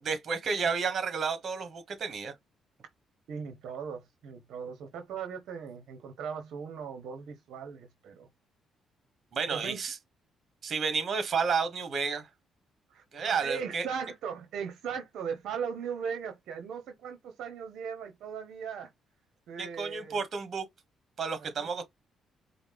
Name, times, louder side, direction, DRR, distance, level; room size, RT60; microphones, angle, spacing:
voice 1, 0.0-2.3 9.3-10.0 10.6-12.3 13.1-13.9 19.6-20.7 21.2-21.8, right 5 dB, 55° right, 1.2 m, -31 dB
voice 2, 3.3-8.3 9.5-9.8 12.9-18.9 19.5-20.2 21.4-21.7, right 7 dB, 75° right, 0.8 m, -38 dB
5.0 x 2.1 x 3.4 m
cardioid pair, 75°, 0 cm